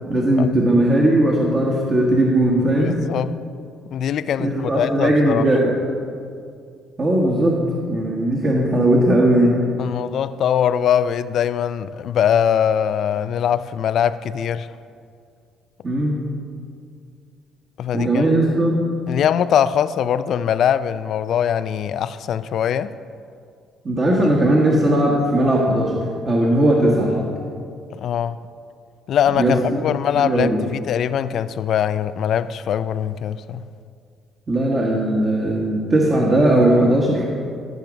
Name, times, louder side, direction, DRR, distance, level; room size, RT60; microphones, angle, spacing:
voice 1, 0.1-3.0 4.4-5.8 7.0-9.6 15.8-16.2 17.9-18.9 23.8-27.3 29.3-29.6 30.1-30.6 34.5-37.2, right 1 dB, 30° right, 1.5 m, -18 dB
voice 2, 2.9-3.3 3.9-5.5 9.8-14.7 17.8-18.2 19.1-22.9 28.0-28.4 29.1-33.7, left 9 dB, 60° left, 0.4 m, -22 dB
13.5 x 6.0 x 5.2 m
cardioid pair, 110°, 0 cm